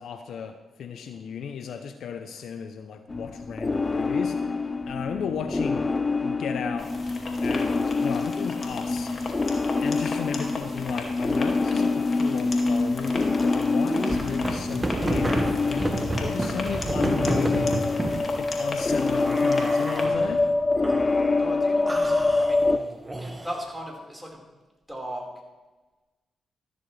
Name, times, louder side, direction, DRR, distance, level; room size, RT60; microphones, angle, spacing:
voice 1, 0.0-4.4 4.9-5.9 6.2-6.9 7.4-9.1 9.8-17.8 18.4-20.5, left 7 dB, 75° left, 8 dB, 0.8 m, -34 dB
sound 1, 3.1-22.8, left 3 dB, 30° left, 0.6 m, -26 dB
sound 2, 6.8-20.1, left 3 dB, 50° left, 2.3 m, -38 dB
sound 3, 13.8-18.2 19.1-20.4 20.8-21.4 21.9-23.7, right 1 dB, 20° right, 1.8 m, -30 dB
voice 2, 17.2-17.7 21.4-22.9 23.2-24.4 24.9-25.3, equal, ahead, -1 dB, 4.8 m, -38 dB
14.0 x 12.0 x 3.4 m, 1.2 s
supercardioid pair, 45°, 0 cm